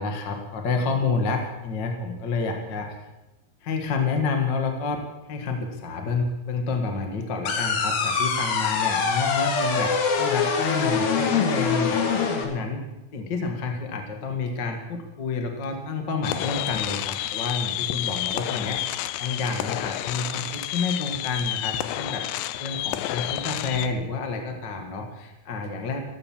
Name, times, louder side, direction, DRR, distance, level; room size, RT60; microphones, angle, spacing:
voice 1, 0.0-3.1 3.6-12.0 12.3-12.8 13.1-26.0, left 4 dB, 50° left, 4 dB, 1.3 m, -29 dB
sound 1, 7.5-12.5, left 5 dB, 65° left, 3.4 m, -24 dB
sound 2, 16.2-23.9, left 14 dB, 90° left, 2.8 m, -30 dB
14.5 x 13.5 x 7.2 m, 1.0 s
omnidirectional pair, 4.7 m